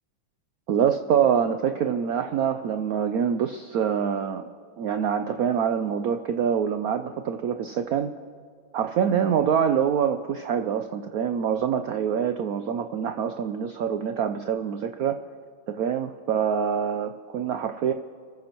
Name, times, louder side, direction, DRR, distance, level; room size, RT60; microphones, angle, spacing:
voice 1, 0.7-4.4 4.8-8.1 8.7-15.2 15.7-17.9, right 8 dB, 90° right, 8 dB, 0.8 m, -25 dB
27.5 x 14.5 x 3.0 m, 2.1 s
omnidirectional pair, 2.2 m